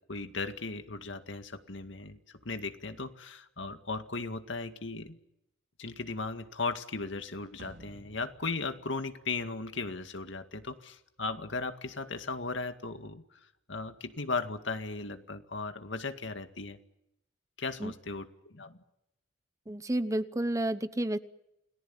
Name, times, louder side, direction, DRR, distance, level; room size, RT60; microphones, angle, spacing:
voice 1, 0.1-2.2 2.5-5.2 5.8-13.2 13.7-16.8 17.6-18.8, left 3 dB, 80° left, 8 dB, 2.0 m, -37 dB
sound 1, 7.6-10.1, right 1 dB, 70° right, 4.5 m, -55 dB
voice 2, 19.7-21.2, right 1 dB, 15° right, 13 dB, 0.9 m, -30 dB
29.0 x 19.0 x 9.0 m, 0.84 s
head